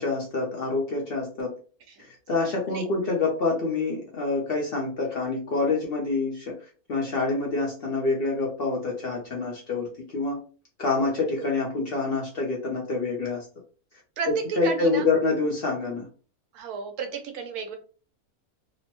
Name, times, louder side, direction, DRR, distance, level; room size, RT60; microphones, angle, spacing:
voice 1, 0.0-1.5 2.0-6.5 6.9-10.4 10.8-13.4 14.3-16.1, left 3 dB, 55° left, -1 dB, 0.7 m, -27 dB
voice 2, 14.2-15.0 16.5-17.8, right 6 dB, 85° right, 5 dB, 1.1 m, -32 dB
3.0 x 2.1 x 2.8 m, 0.38 s
omnidirectional pair, 1.6 m